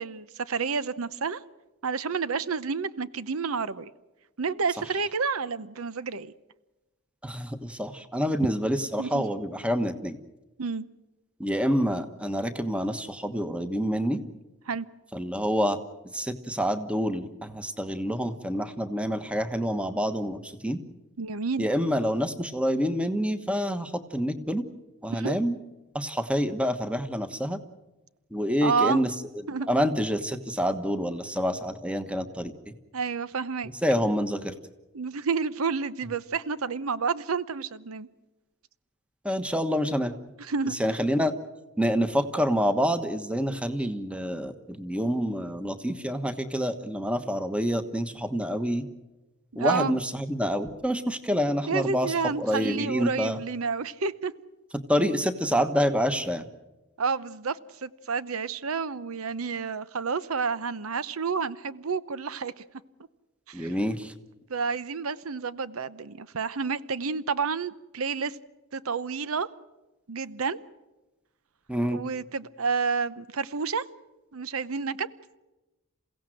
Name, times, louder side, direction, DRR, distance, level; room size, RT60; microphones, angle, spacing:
voice 1, 0.0-1.4 1.8-3.9 4.4-6.3 8.4-8.5 9.0-9.2 10.6-10.9 14.7-14.9 21.2-21.7 25.1-25.4 28.6-29.0 29.5-29.7 32.9-33.7 34.9-38.1 40.4-40.8 49.5-50.0 51.7-54.3 57.0-62.6 63.5-63.8 64.5-68.4 68.7-69.5 70.1-70.6 71.9-73.9 74.3-75.1, right 5 dB, 85° right, 16 dB, 0.8 m, -30 dB
voice 2, 7.2-10.2 11.4-14.2 15.1-15.8 16.1-20.8 21.6-24.6 25.0-25.6 25.9-27.6 28.3-29.1 29.7-32.7 33.8-34.5 39.2-40.1 40.8-41.3 41.8-48.8 49.6-53.4 54.9-56.5 63.5-64.1 71.7-72.0, equal, 5° right, 10 dB, 1.2 m, -27 dB
28.5 x 16.5 x 7.7 m, 1.1 s
head